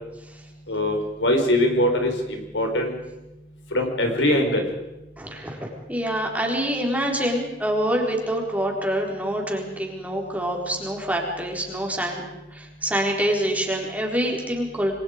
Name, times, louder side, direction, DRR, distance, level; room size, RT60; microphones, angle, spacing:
voice 1, 0.7-3.0 3.7-4.6, left 1 dB, 80° left, 3 dB, 4.7 m, -22 dB
voice 2, 5.2-12.2 12.5-14.9, equal, 10° right, 0 dB, 4.3 m, -26 dB
29.0 x 21.5 x 5.2 m, 0.97 s
head